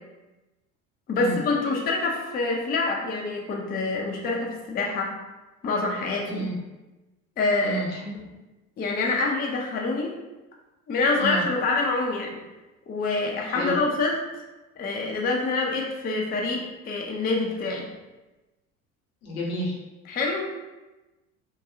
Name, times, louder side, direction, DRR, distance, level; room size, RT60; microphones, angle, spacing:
voice 1, 1.1-5.1 5.6-6.4 7.4-7.8 8.8-10.2 10.9-12.4 12.9-14.2 14.8-17.9 20.1-20.6, left 3 dB, 20° left, -1 dB, 0.5 m, -26 dB
voice 2, 7.6-8.2 11.1-11.4 13.5-13.8 19.2-19.8, right 1 dB, 80° left, -3 dB, 0.9 m, -31 dB
2.7 x 2.2 x 2.6 m, 1.1 s
hypercardioid pair, 65°, 43 cm